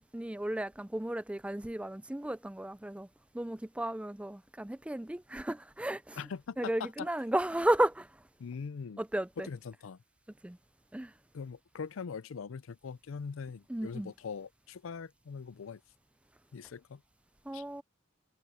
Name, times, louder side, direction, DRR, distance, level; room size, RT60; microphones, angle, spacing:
voice 1, 0.0-3.1 3.3-6.2 6.6-8.1 9.0-9.5 10.4-10.6 10.9-11.1 13.7-14.1 17.5-17.8, right 1 dB, 5° right, 0.4 m, -33 dB
voice 2, 6.2-7.1 8.4-9.0 9.4-10.0 11.3-15.8 16.5-17.0 17.5-17.6, left 6 dB, 85° left, 0.5 m, -42 dB
head